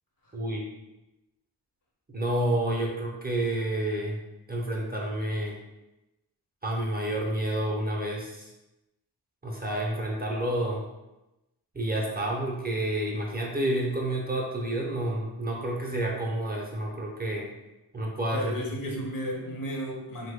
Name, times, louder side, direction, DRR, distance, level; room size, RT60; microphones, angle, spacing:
voice 1, 0.3-0.7 2.1-4.2 4.5-5.6 6.6-8.5 9.4-10.8 11.7-17.5 17.9-18.4, right 1 dB, 25° right, -2 dB, 0.5 m, -29 dB
voice 2, 18.3-20.3, equal, 55° left, -1 dB, 0.9 m, -33 dB
3.0 x 2.1 x 3.4 m, 0.97 s
cardioid pair, 65°, 41 cm